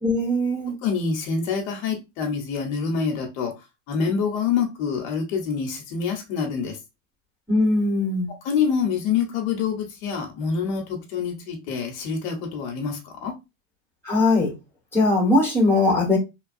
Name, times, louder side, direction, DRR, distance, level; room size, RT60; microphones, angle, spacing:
voice 1, 0.0-0.7 7.5-8.3 14.0-14.5 14.9-16.2, left 2 dB, 5° left, 1.3 m, -20 dB
voice 2, 0.8-3.5 3.9-6.8 8.4-13.3, left 6 dB, 75° left, 1.0 m, -26 dB
3.1 x 2.3 x 2.5 m
supercardioid pair, 135°, 42 cm